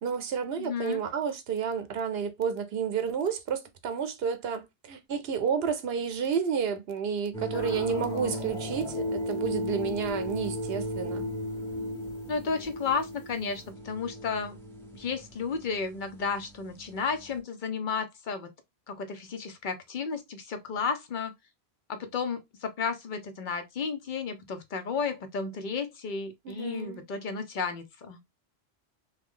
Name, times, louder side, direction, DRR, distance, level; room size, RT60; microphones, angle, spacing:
voice 1, 0.0-11.2 26.4-27.0, right 7 dB, 75° right, 0.9 m, -31 dB
voice 2, 0.6-1.0 12.3-14.6 14.9-18.5 18.9-21.3 21.9-28.2, left 5 dB, 55° left, 0.7 m, -33 dB
sound 1, 7.3-17.4, left 1 dB, 5° left, 0.9 m, -36 dB
sound 2, 7.5-13.7, left 4 dB, 90° left, 1.0 m, -47 dB
3.1 x 2.2 x 3.5 m
omnidirectional pair, 1.1 m